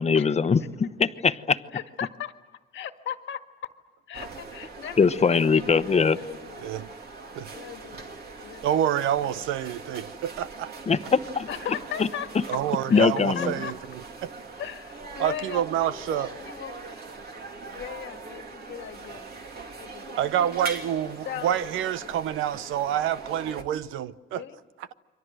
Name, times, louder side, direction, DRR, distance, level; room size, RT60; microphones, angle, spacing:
voice 1, 0.0-1.6 5.0-6.2 10.9-11.5 12.9-13.5, left 5 dB, 35° left, 1.0 m, -21 dB
voice 2, 1.7-2.3 2.7-3.7 4.1-5.4 6.1-6.7 7.5-8.1 8.4-8.7 9.2-9.5 11.5-12.3 12.9-13.7 14.6-15.6 16.1-16.9 17.7-19.3 19.8-20.3 21.2-21.6 22.0-22.2 22.9-23.0 24.3-24.6, left 9 dB, 70° left, 1.7 m, -37 dB
sound 1, 4.1-23.6, right 3 dB, 55° right, 2.8 m, -42 dB
voice 3, 8.6-10.7 12.5-13.7 14.2-14.3 15.2-16.3 20.2-24.4, right 10 dB, 90° right, 0.8 m, -27 dB
29.5 x 23.5 x 7.8 m
cardioid pair, 90°, 20 cm